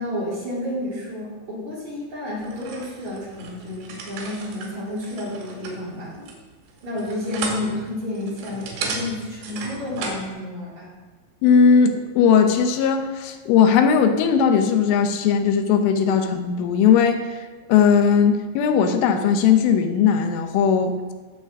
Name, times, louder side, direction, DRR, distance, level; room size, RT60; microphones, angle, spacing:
voice 1, 0.0-6.3 6.8-10.9, left 1 dB, 40° right, -7 dB, 4.0 m, -30 dB
sound 1, 2.4-10.3, right 4 dB, 85° right, 4.6 m, -35 dB
voice 2, 11.4-17.2 17.7-21.1, left 7 dB, 85° left, 7 dB, 3.4 m, -18 dB
18.5 x 7.0 x 3.7 m, 1.3 s
omnidirectional pair, 5.5 m